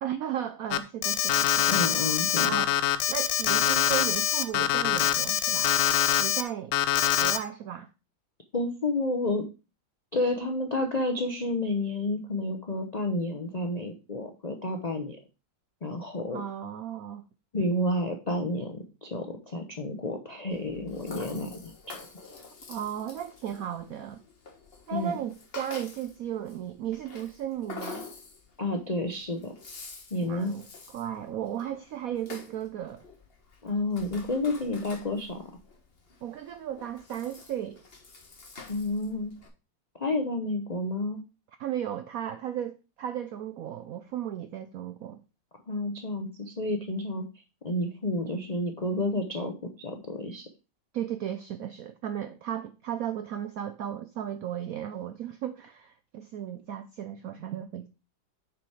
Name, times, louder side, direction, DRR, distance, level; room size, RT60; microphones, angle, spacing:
voice 1, 0.0-1.8 2.4-2.7 3.1-5.8 6.2-6.7 7.2-7.9 16.3-17.2 22.7-24.2 24.9-28.1 30.2-33.0 36.2-37.8 41.6-45.2 50.9-57.9, right 10 dB, 80° right, 0.7 m, -35 dB
Alarm, 0.7-6.4 6.7-7.4, left 11 dB, 85° left, 1.4 m, -24 dB
voice 2, 1.7-2.6 8.5-9.4 10.1-15.2 15.8-16.4 17.5-22.0 24.9-25.1 28.6-29.5 30.1-30.5 33.6-35.4 38.7-39.3 39.9-41.2 45.7-47.2 47.6-50.5, left 2 dB, 65° left, 0.4 m, -30 dB
Rattle (instrument), 20.5-39.5, left 4 dB, 35° left, 1.4 m, -47 dB
7.1 x 4.9 x 4.7 m
omnidirectional pair, 2.0 m